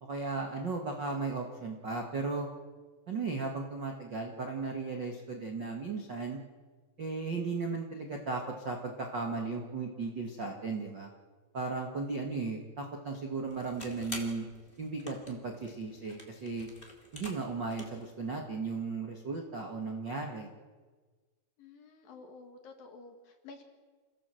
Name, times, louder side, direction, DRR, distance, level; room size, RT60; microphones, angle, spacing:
voice 1, 0.0-2.5 3.1-6.4 7.0-11.1 11.5-14.5 14.8-16.7 17.1-20.5, right 4 dB, 55° right, 2 dB, 1.2 m, -36 dB
sound 1, 13.4-18.1, left 1 dB, 15° left, 2.4 m, -48 dB
voice 2, 21.6-23.6, left 3 dB, 60° left, 5 dB, 3.4 m, -51 dB
29.0 x 16.5 x 7.8 m, 1.4 s
omnidirectional pair, 5.2 m